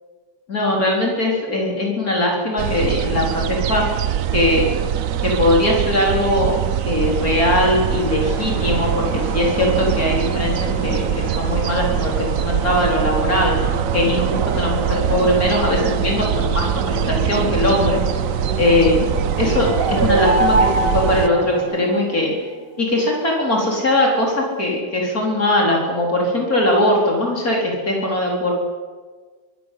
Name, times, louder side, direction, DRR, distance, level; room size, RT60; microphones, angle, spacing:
voice 1, 0.5-3.8 4.3-4.6 5.2-6.6 6.8-18.0 18.5-22.3 22.8-28.5, left 1 dB, 50° left, -1 dB, 4.8 m, -20 dB
sound 1, 2.6-21.3, right 10 dB, 60° right, 1.0 m, -23 dB
sound 2, 7.1-21.6, left 2 dB, 35° left, 7.2 m, -31 dB
sound 3, 19.4-22.3, right 2 dB, 35° right, 1.3 m, -22 dB
23.5 x 13.5 x 8.5 m, 1.4 s
omnidirectional pair, 1.9 m